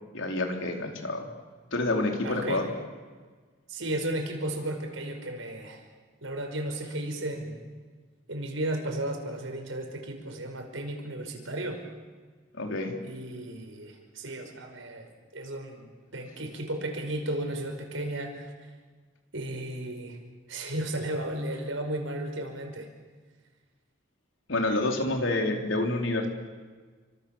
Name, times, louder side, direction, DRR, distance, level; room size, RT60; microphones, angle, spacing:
voice 1, 0.1-1.3 1.7-2.7 12.6-12.9 24.5-26.3, left 2 dB, 75° left, 2 dB, 4.2 m, -28 dB
voice 2, 2.2-2.7 3.7-5.8 6.2-7.6 8.3-11.8 13.0-18.5 19.3-20.2 20.5-22.9, right 1 dB, 80° right, 4 dB, 5.5 m, -34 dB
29.5 x 25.5 x 7.4 m, 1.5 s
head